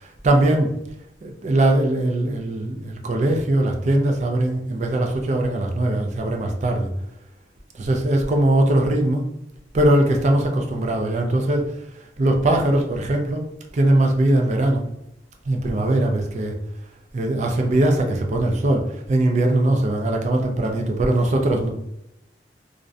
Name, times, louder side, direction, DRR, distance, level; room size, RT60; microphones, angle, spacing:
voice 1, 0.2-0.7 1.2-6.9 7.8-9.2 9.7-11.7 12.2-13.5 13.7-14.8 15.5-16.5 17.1-18.8 19.1-21.7, right 1 dB, 40° right, 2 dB, 0.4 m, -20 dB
2.4 x 2.1 x 2.5 m, 0.84 s
head